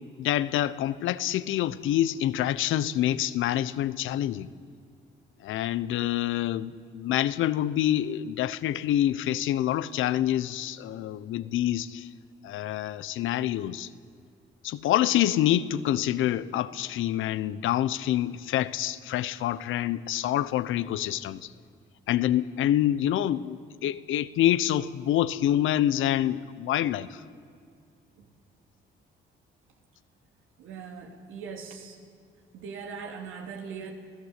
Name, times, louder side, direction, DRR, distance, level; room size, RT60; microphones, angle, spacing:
voice 1, 0.2-4.5 5.4-12.1 12.4-13.9 14.6-21.5 22.1-27.2, left 12 dB, 85° left, 0.8 m, -26 dB
voice 2, 30.6-32.0 32.5-33.9, right 6 dB, 90° right, 3.2 m, -40 dB
27.5 x 17.0 x 8.2 m
cardioid pair, 90°, 20 cm